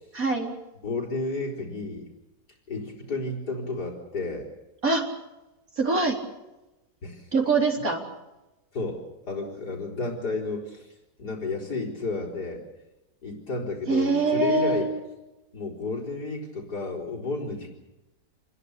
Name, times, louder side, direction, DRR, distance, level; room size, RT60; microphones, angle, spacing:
voice 1, 0.1-0.5 4.8-5.0 5.8-6.2 7.3-8.0 13.9-15.0, right 3 dB, 55° right, 1 dB, 4.4 m, -23 dB
voice 2, 0.8-2.1 2.7-4.5 7.0-7.3 8.7-10.9 11.2-12.6 13.2-14.8 15.5-17.7, left 3 dB, 75° left, -2 dB, 4.9 m, -32 dB
28.0 x 21.5 x 6.8 m, 1.0 s
omnidirectional pair, 1.7 m